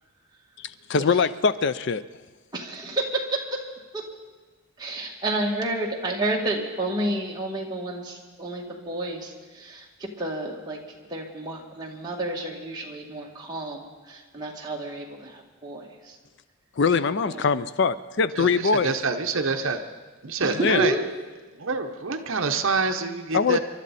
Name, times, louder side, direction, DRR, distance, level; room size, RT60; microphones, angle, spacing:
voice 1, 0.9-2.0 16.8-18.9 20.6-20.8 23.3-23.6, left 5 dB, 55° left, 14 dB, 0.4 m, -22 dB
voice 2, 2.5-3.6 3.9-4.0 4.8-16.2 17.3-17.5 19.4-19.8 20.4-21.1, right 1 dB, 20° right, -2 dB, 2.0 m, -30 dB
voice 3, 18.4-19.8 20.2-20.9 21.6-23.6, right 4 dB, 65° right, 6 dB, 0.8 m, -26 dB
28.5 x 12.0 x 4.2 m, 1.3 s
head